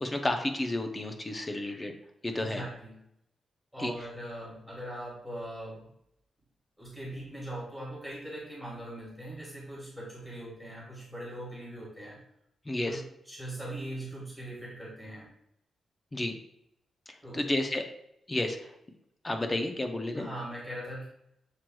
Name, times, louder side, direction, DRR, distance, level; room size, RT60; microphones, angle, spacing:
voice 1, 0.0-1.9 2.2-2.6 3.8-3.9 12.7-13.0 16.1-16.4 17.3-17.8 18.3-18.6 19.2-20.3, left 1 dB, 15° left, 5 dB, 0.5 m, -31 dB
voice 2, 2.3-3.0 3.7-5.9 6.8-12.2 12.8-15.3 17.2-17.5 20.1-21.1, right 1 dB, ahead, -6 dB, 1.4 m, -41 dB
7.4 x 3.0 x 2.2 m, 0.75 s
wide cardioid pair, 180°, 0 cm